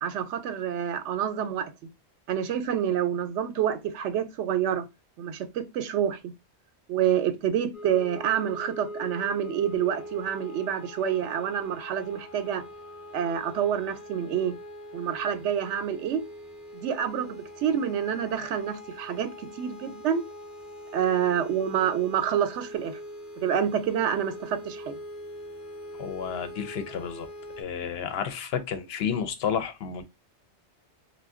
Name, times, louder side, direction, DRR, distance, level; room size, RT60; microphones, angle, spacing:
voice 1, 0.0-1.7 2.3-4.8 5.2-6.2 6.9-12.6 13.1-14.5 14.9-16.2 16.8-20.2 20.9-23.0 23.4-25.0, right 9 dB, 85° right, 0.9 m, -27 dB
sound 1, 7.7-27.6, equal, ahead, 0.5 m, -43 dB
voice 2, 26.0-27.3 27.6-30.0, left 7 dB, 70° left, 0.8 m, -31 dB
2.4 x 2.1 x 3.5 m
omnidirectional pair, 1.1 m